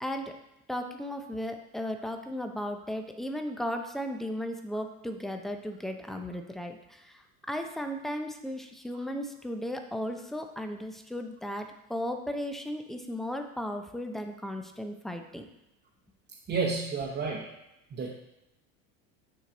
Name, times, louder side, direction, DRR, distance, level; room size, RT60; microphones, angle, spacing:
voice 1, 0.0-0.3 0.7-15.4, equal, ahead, 5 dB, 0.5 m, -35 dB
voice 2, 16.5-17.5 17.9-18.1, right 4 dB, 25° right, -3 dB, 0.9 m, -30 dB
9.2 x 3.2 x 3.9 m, 0.87 s
supercardioid pair, 115°, 39 cm